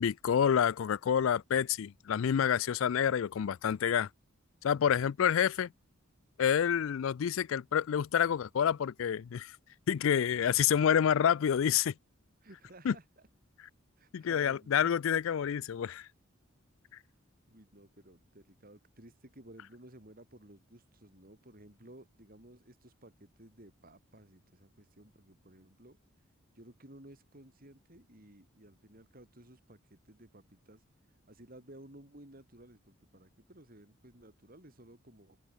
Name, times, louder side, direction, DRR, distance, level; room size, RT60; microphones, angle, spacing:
voice 1, 0.0-4.1 4.6-5.7 6.4-9.6 9.9-11.9 12.9-13.0 14.1-16.1, left 8 dB, 70° left, 0.4 m, -28 dB
voice 2, 12.4-13.3 14.0-14.9 17.5-26.0 26.5-30.8 31.3-35.4, right 1 dB, 45° right, 4.2 m, -55 dB
head